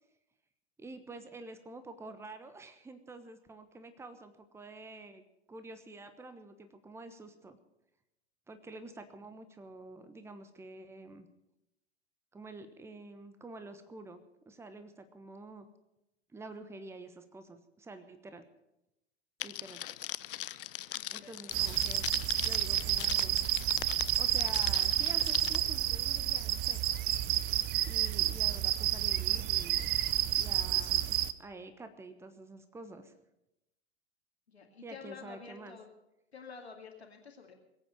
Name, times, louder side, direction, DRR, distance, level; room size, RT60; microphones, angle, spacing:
voice 1, 0.8-5.2 5.5-7.6 8.5-11.3 12.3-15.6 16.3-18.4 19.4-19.8 21.1-23.4 24.2-26.8 27.9-29.9 30.4-33.1 34.8-35.8, right 2 dB, 10° right, 9 dB, 1.2 m, -48 dB
Crackle, 19.4-25.6, left 13 dB, 55° left, 0.5 m, -40 dB
voice 2, 20.9-21.5 34.5-35.9 36.3-37.5, left 5 dB, 75° left, 3 dB, 2.4 m, -49 dB
sound 1, 21.5-31.3, right 13 dB, 30° right, 0.7 m, -30 dB
21.5 x 9.0 x 6.8 m, 0.89 s
figure-of-eight pair, 90°, 32 cm